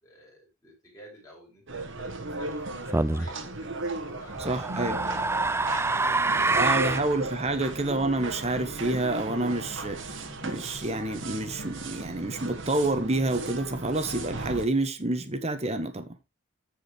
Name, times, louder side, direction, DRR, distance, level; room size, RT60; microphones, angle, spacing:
voice 1, 0.0-4.6 5.0-5.3 5.6-7.6, equal, 15° left, 6.0 m, -50 dB
sound 1, 1.7-14.7, right 2 dB, 60° right, 1.6 m, -36 dB
sound 2, 2.9-3.3 4.3-7.1, right 3 dB, 10° right, 0.4 m, -26 dB
voice 2, 4.4-5.0 6.5-10.2 10.4-16.1, right 2 dB, 30° right, 1.4 m, -28 dB
sound 3, 6.3-11.3, left 1 dB, 50° left, 1.7 m, -50 dB
15.0 x 5.1 x 3.3 m
head